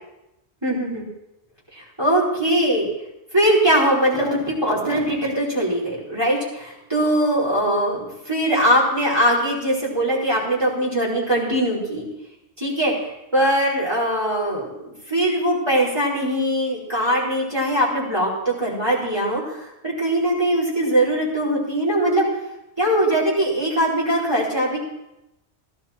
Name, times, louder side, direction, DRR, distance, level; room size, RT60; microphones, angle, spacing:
voice 1, 0.6-1.1 1.7-2.9 3.3-12.0 12.6-22.2 22.8-24.8, right 1 dB, 20° right, -6 dB, 4.6 m, -21 dB
16.0 x 11.5 x 4.4 m, 0.90 s
omnidirectional pair, 1.1 m